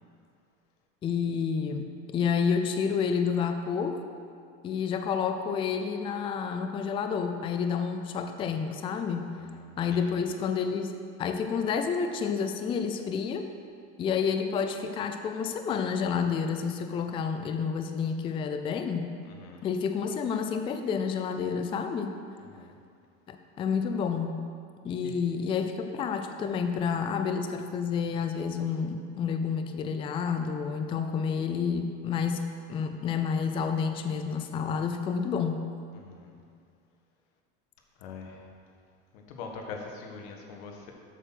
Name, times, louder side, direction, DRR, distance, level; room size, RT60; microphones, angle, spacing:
voice 1, 1.0-4.0 4.6-9.4 9.8-13.5 14.0-19.2 19.6-22.2 23.3-24.5 24.8-35.7, left 6 dB, 15° left, 6 dB, 0.4 m, -29 dB
voice 2, 9.9-10.2 19.4-19.6 22.5-22.7 25.0-25.2 35.9-36.3 38.0-38.4 39.1-40.9, left 4 dB, 60° left, 2 dB, 1.5 m, -42 dB
8.1 x 6.4 x 5.9 m, 2.2 s
supercardioid pair, 145°, 34 cm